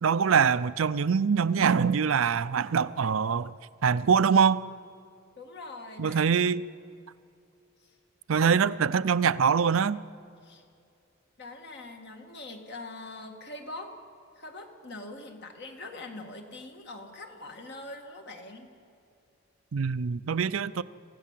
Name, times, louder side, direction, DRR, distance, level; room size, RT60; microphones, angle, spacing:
voice 1, 0.0-3.5 3.8-4.6 6.0-6.6 8.3-10.0 19.7-20.8, right 6 dB, 75° right, 0.5 m, -24 dB
voice 2, 5.4-6.4 7.8-8.0 10.4-10.6 11.4-13.9 14.4-18.7, left 2 dB, 55° left, 2.1 m, -43 dB
26.5 x 16.0 x 7.5 m
head